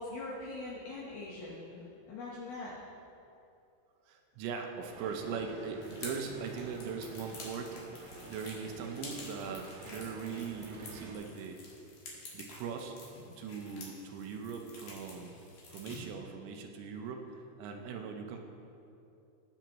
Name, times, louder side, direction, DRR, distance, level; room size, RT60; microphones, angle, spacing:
voice 1, 0.0-2.7, left 2 dB, 70° left, -6 dB, 2.3 m, -42 dB
voice 2, 4.1-11.6 12.3-13.0 13.4-15.3 15.7-18.5, right 6 dB, 85° right, 3 dB, 3.4 m, -40 dB
sound 1, 4.8-11.1, right 2 dB, 65° right, 2.8 m, -49 dB
sound 2, 5.8-16.0, left 3 dB, 55° left, 2.8 m, -50 dB
19.0 x 7.2 x 3.0 m, 2.7 s
omnidirectional pair, 5.7 m